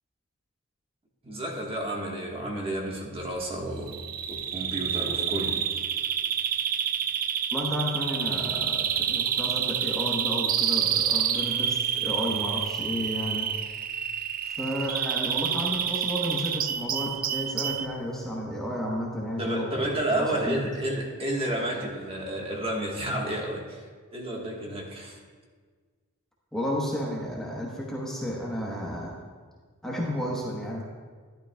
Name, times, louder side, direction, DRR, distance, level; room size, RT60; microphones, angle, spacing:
voice 1, 1.2-4.0 4.3-5.6 6.0-6.1 19.4-23.8 24.1-25.2, right 1 dB, 25° right, -1 dB, 1.4 m, -31 dB
Bird vocalization bird call bird song, 3.9-17.9, right 9 dB, 40° right, 0.4 m, -28 dB
voice 2, 7.5-13.5 14.4-20.6 26.5-29.2 29.8-30.9, equal, ahead, -4 dB, 1.1 m, -32 dB
12.0 x 11.5 x 2.3 m, 1.5 s
head